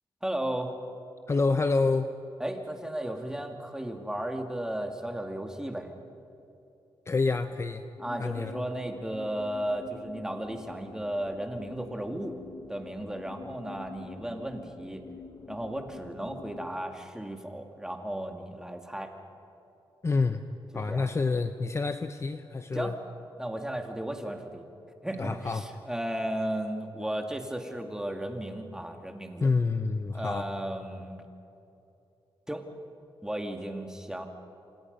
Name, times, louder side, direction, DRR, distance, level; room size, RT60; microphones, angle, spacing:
voice 1, 0.2-0.7 2.4-5.9 8.0-12.4 12.7-15.0 15.5-19.1 20.7-21.1 22.7-23.0 23.4-24.6 25.0-29.5 30.1-31.2 32.5-32.7 33.2-34.3, right 1 dB, 5° right, 4 dB, 2.4 m, -35 dB
voice 2, 1.3-2.1 7.1-7.8 8.2-8.6 20.0-20.4 20.7-22.9 25.2-25.6 29.4-30.5, left 4 dB, 30° left, 9 dB, 0.8 m, -27 dB
sound 1, 8.0-16.7, left 5 dB, 50° left, 1.2 m, -47 dB
28.0 x 26.5 x 5.5 m, 2.8 s
wide cardioid pair, 110°, 9 cm